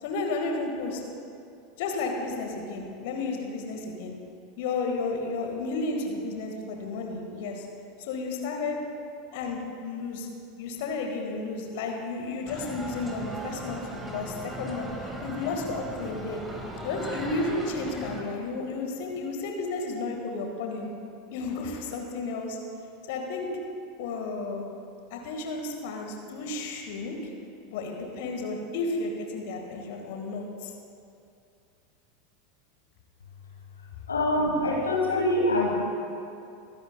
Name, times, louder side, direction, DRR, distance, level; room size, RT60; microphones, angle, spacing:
voice 1, 0.0-1.0 1.8-4.1 4.6-7.7 8.0-8.8 9.3-10.3 10.6-14.9 15.2-16.4 16.8-20.9 21.3-22.6 23.1-23.5 24.0-24.6 25.1-27.2 27.7-30.7, left 3 dB, 55° left, 2 dB, 1.5 m, -32 dB
sound 1, 12.5-18.2, equal, 5° right, 1.6 m, -38 dB
voice 2, 34.1-35.8, left 1 dB, 75° left, -2 dB, 1.3 m, -24 dB
22.5 x 10.5 x 2.2 m, 2.6 s
figure-of-eight pair, 85°, 0 cm